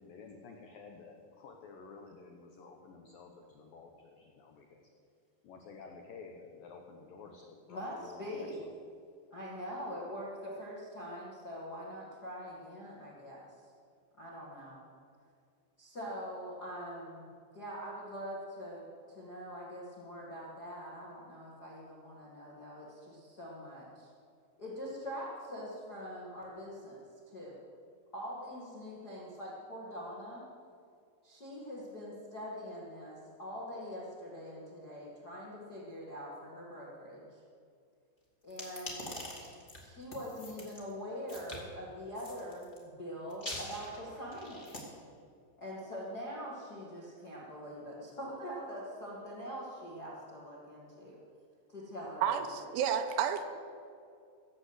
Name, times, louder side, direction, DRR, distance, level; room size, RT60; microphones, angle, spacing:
voice 1, 0.0-4.8 5.4-8.7, left 4 dB, 80° left, 2 dB, 2.0 m, -52 dB
voice 2, 7.7-8.6 9.3-13.5 14.2-14.8 15.8-17.3 17.5-24.1 24.6-27.6 28.1-30.4 31.2-37.4 38.4-39.1 39.8-44.9 45.6-51.2 51.7-52.7, equal, 55° left, -4 dB, 1.1 m, -43 dB
sound 1, 38.5-40.8 41.3-41.6 42.1-42.8 43.3-44.8, left 1 dB, 35° left, 0.7 m, -44 dB
voice 3, 52.2-53.4, right 8 dB, 80° right, 8 dB, 3.3 m, -31 dB
16.0 x 7.7 x 8.1 m, 2.3 s
omnidirectional pair, 5.6 m